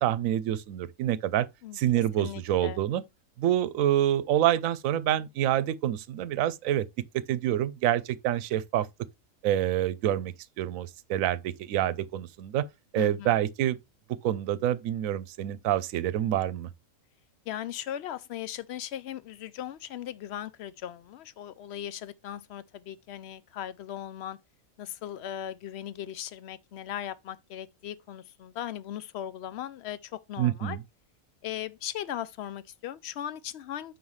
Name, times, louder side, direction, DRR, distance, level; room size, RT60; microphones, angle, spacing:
voice 1, 0.0-1.5 1.7-3.0 3.4-6.9 7.1-8.9 9.4-12.6 12.9-13.8 14.2-16.7 30.4-30.8, right 12 dB, 80° right, 1.0 m, -27 dB
voice 2, 1.6-2.8 13.0-13.4 17.5-24.4 24.8-30.8 31.4-34.0, left 11 dB, 65° left, 0.7 m, -38 dB
5.9 x 5.5 x 3.1 m
omnidirectional pair, 1.4 m